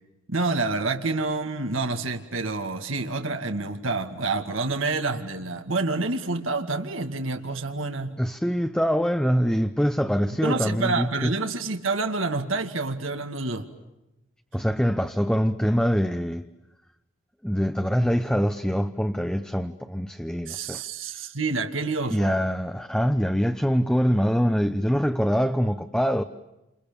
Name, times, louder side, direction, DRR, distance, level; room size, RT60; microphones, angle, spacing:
voice 1, 0.3-8.2 10.4-13.7 20.5-22.4, right 3 dB, 85° right, 2.3 m, -28 dB
voice 2, 8.2-11.3 14.5-16.5 17.4-20.8 22.1-26.2, equal, 5° left, 0.9 m, -24 dB
29.0 x 29.0 x 7.0 m
head